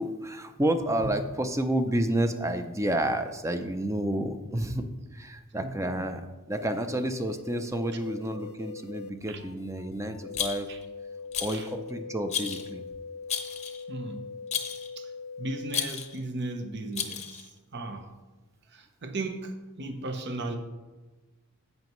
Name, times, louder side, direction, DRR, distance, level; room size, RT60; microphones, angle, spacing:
voice 1, 0.0-4.8 5.1-10.7 11.4-12.8, right 1 dB, 15° right, 8 dB, 0.5 m, -30 dB
voice 2, 5.6-6.0 9.3-9.4 10.7-10.8 11.5-11.7 13.9-14.2 15.0-15.1 15.4-17.4 17.7-18.1 18.7-19.5 19.8-20.6, right 2 dB, 50° right, 6 dB, 0.8 m, -36 dB
sound 1, 6.5-15.9, left 5 dB, 75° left, 0.6 m, -42 dB
Rattle, 10.3-10.8 11.3-11.7 12.3-12.7 13.3-13.8 14.5-14.9 15.7-16.2 16.9-17.5, left 8 dB, 30° left, 0.7 m, -33 dB
11.0 x 7.9 x 3.1 m, 1.2 s
head